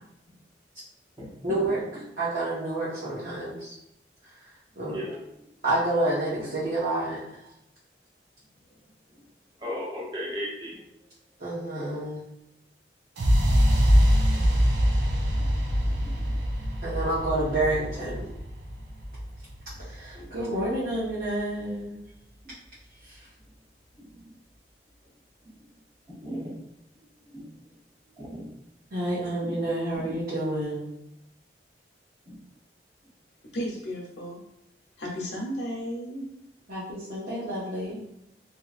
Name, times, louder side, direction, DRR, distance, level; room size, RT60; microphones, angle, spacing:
voice 1, 1.4-3.7 4.2-4.3 4.8-5.0 5.6-7.2 11.4-12.3 16.8-18.3 19.8-22.0 23.0-23.3 28.9-30.8 36.7-38.0, right 1 dB, 60° right, -11 dB, 1.0 m, -29 dB
voice 2, 9.6-10.8 15.4-15.5 15.8-16.2 20.1-20.6 24.0-24.1 26.1-26.5 27.3-27.4 28.2-28.5 29.4-29.6 29.9-30.1 32.3-32.4, equal, 25° right, -5 dB, 0.9 m, -37 dB
sound 1, 13.2-21.1, equal, 85° right, 0.6 m, -24 dB
voice 3, 33.5-34.4 35.0-36.3, equal, 85° left, -2 dB, 0.9 m, -33 dB
2.8 x 2.8 x 2.4 m, 0.83 s
head